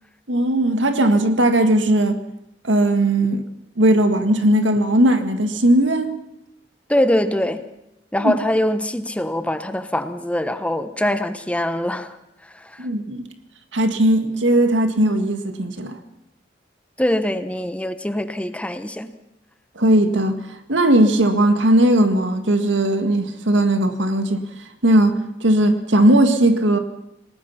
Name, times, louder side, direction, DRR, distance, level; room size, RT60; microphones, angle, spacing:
voice 1, 0.3-2.2 2.6-3.4 3.8-6.2 8.2-8.3 12.8-13.2 13.7-16.0 19.8-20.4 20.7-24.4 24.8-26.8, right 1 dB, 85° right, 1.9 m, -18 dB
voice 2, 6.9-7.6 8.1-12.2 12.4-12.9 17.0-19.1, left 1 dB, 5° left, 1.0 m, -23 dB
27.5 x 19.0 x 5.8 m
head